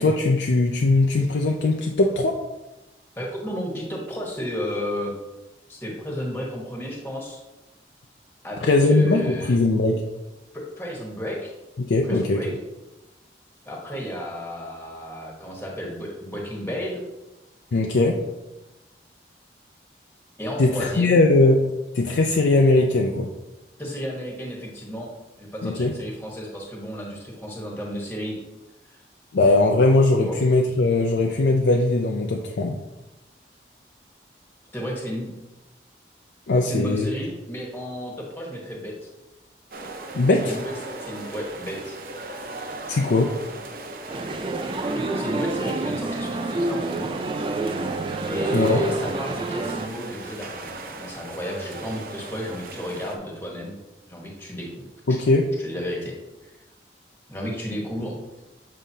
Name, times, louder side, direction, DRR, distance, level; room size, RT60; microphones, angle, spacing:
voice 1, 0.0-2.4 8.6-10.0 11.8-12.4 17.7-18.2 20.6-21.7 21.9-23.3 25.6-25.9 29.3-32.8 36.5-37.1 40.1-40.6 42.9-43.3 48.5-48.9 55.1-55.5, left 2 dB, 85° left, 2 dB, 0.5 m, -20 dB
voice 2, 3.2-5.1 5.7-7.4 8.4-9.6 10.5-11.5 12.0-12.5 13.6-17.0 20.4-21.2 23.8-25.1 25.4-28.4 28.8-29.0 30.2-30.4 34.7-35.3 36.6-38.9 40.4-40.7 41.0-42.0 44.9-47.1 48.2-53.8 54.1-55.2 55.6-56.1 56.4-56.5 57.3-58.1, equal, 10° left, -2 dB, 1.2 m, -32 dB
sound 1, 39.7-53.2, right 2 dB, 55° right, 0.7 m, -38 dB
Male speech man speaking, 44.1-49.9, right 2 dB, 30° right, 0.3 m, -28 dB
7.5 x 5.0 x 2.7 m, 1.0 s
head